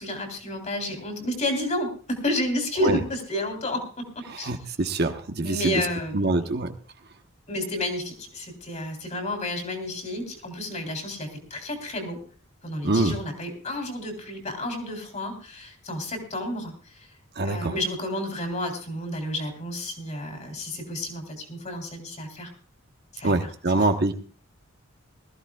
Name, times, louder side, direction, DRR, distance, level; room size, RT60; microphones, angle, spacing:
voice 1, 0.0-4.5 5.4-6.5 7.5-12.2 12.6-17.1 17.4-22.5 23.1-23.3, left 1 dB, 35° left, 4 dB, 3.3 m, -31 dB
voice 2, 4.3-5.9 6.1-6.7 12.8-13.1 17.4-17.7 23.2-24.1, right 2 dB, 50° right, 6 dB, 1.1 m, -24 dB
21.0 x 14.5 x 2.3 m, 0.39 s
head